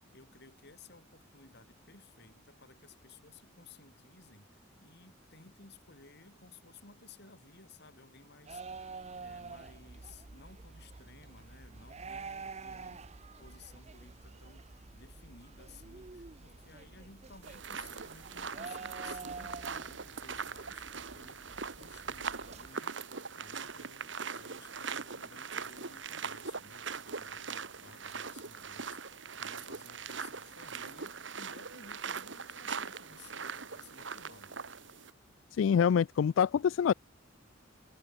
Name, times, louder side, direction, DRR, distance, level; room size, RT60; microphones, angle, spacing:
voice 1, 0.0-13.1 13.4-23.0 23.3-34.6, left 3 dB, 60° left, 6.6 m, -57 dB
sound 1, 8.5-22.7, right 4 dB, 35° right, 0.7 m, -48 dB
sound 2, 17.4-35.1, right 5 dB, 65° right, 1.8 m, -41 dB
voice 2, 35.5-36.9, left 7 dB, 75° left, 0.3 m, -26 dB
head